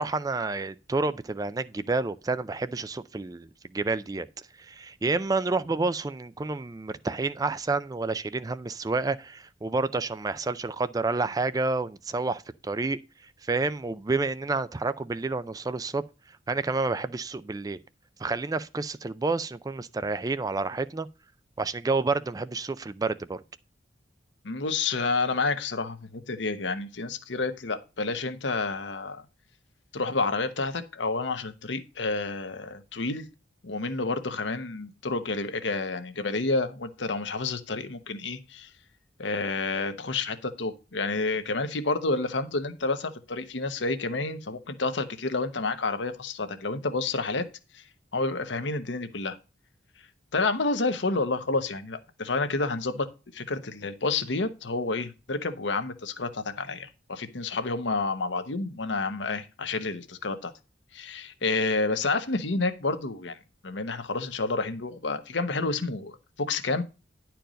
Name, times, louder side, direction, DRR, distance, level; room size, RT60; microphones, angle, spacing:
voice 1, 0.0-4.3 4.6-13.0 13.4-16.0 16.5-17.8 18.2-21.1 21.6-23.4, right 3 dB, 20° right, 0.3 m, -29 dB
voice 2, 24.4-29.2 29.9-33.2 33.6-38.7 39.2-47.4 47.7-47.8 48.1-49.4 50.3-53.1 53.3-60.5 60.9-63.4 63.6-66.8, left 3 dB, 80° left, 1.0 m, -29 dB
10.5 x 4.6 x 5.0 m
head